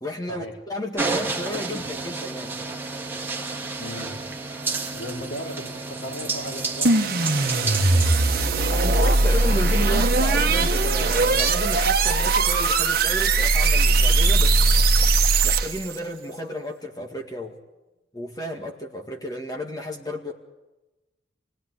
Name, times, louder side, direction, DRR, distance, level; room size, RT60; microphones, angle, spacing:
voice 1, 0.0-2.6 8.7-14.7 15.4-17.6 18.1-20.3, equal, 20° left, 2 dB, 2.0 m, -32 dB
sound 1, 1.0-11.5, right 3 dB, 10° right, 2.4 m, -31 dB
voice 2, 3.8-4.2 4.9-8.0, equal, 75° left, 1 dB, 3.8 m, -37 dB
sound 2, 6.8-15.9, right 3 dB, 55° right, 1.4 m, -20 dB
28.5 x 19.0 x 9.9 m, 1.1 s
head